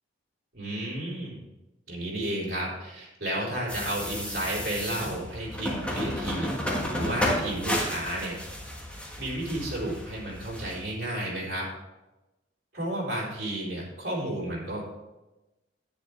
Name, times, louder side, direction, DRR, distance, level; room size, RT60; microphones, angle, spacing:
voice 1, 0.5-1.4 1.9-6.5 6.9-8.4 9.2-11.7 12.7-14.9, right 1 dB, 55° right, -5 dB, 3.8 m, -32 dB
sound 1, 3.7-10.8, left 1 dB, 5° left, 1.5 m, -32 dB
10.5 x 9.4 x 3.3 m, 1.0 s
head